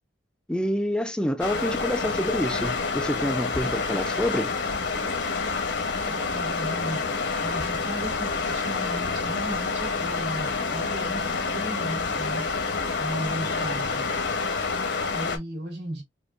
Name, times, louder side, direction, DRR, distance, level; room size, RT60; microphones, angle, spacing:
voice 1, 0.5-4.5, equal, 5° left, 0.4 m, -27 dB
sound 1, 1.4-15.4, left 4 dB, 75° left, 0.9 m, -28 dB
voice 2, 6.1-14.0 14.7-16.0, right 1 dB, 75° right, 2.4 m, -36 dB
5.1 x 2.3 x 2.4 m
head